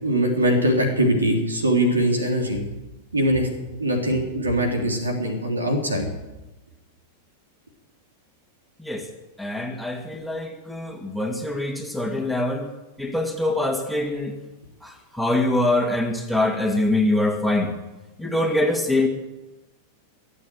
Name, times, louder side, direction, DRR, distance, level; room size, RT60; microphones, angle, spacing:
voice 1, 0.0-2.6 3.1-3.5 3.8-6.1, equal, 75° right, 3 dB, 3.4 m, -22 dB
voice 2, 9.4-12.7 13.0-14.3 15.1-17.7 18.2-19.1, left 1 dB, ahead, 1 dB, 2.2 m, -24 dB
22.0 x 8.4 x 7.8 m, 1.1 s
figure-of-eight pair, 90°, 0 cm